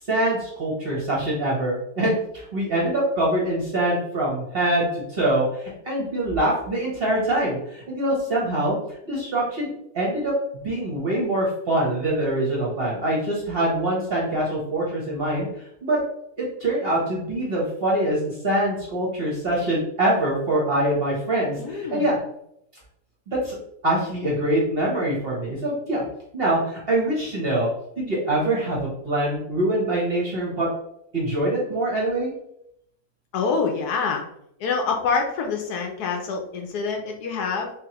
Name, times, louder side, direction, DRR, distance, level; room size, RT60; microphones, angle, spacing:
voice 1, 0.1-8.8 9.0-9.7 9.9-10.3 10.6-16.0 16.4-22.2 23.3-23.6 23.8-26.0 26.3-27.7 28.0-30.7 31.1-32.3, right 1 dB, 45° right, -4 dB, 0.9 m, -24 dB
voice 2, 21.6-22.1 33.3-34.2 34.6-37.7, left 5 dB, 70° left, 2 dB, 1.1 m, -26 dB
3.8 x 3.0 x 2.9 m, 0.75 s
omnidirectional pair, 1.9 m